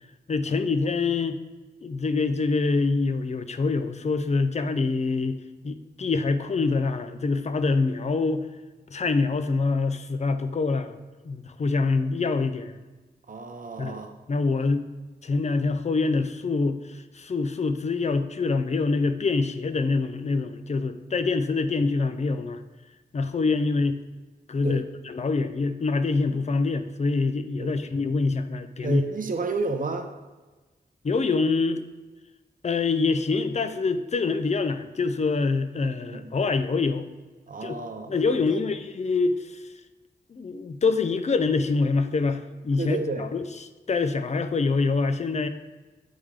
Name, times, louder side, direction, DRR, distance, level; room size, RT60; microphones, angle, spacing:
voice 1, 0.3-1.4 1.8-5.4 5.6-8.5 8.9-11.0 11.2-12.8 13.8-14.0 14.3-14.8 15.2-22.6 23.1-24.0 24.5-29.0 31.0-31.8 32.6-37.1 37.6-37.8 38.1-39.6 40.3-43.4 43.9-45.5, left 4 dB, 40° left, 10 dB, 0.4 m, -25 dB
voice 2, 13.3-14.1 24.6-24.8 27.6-27.7 28.8-30.1 36.0-36.3 37.5-38.6 42.8-43.2, right 3 dB, 50° right, 5 dB, 0.6 m, -31 dB
8.7 x 3.6 x 3.2 m, 1.2 s
wide cardioid pair, 95°, 18 cm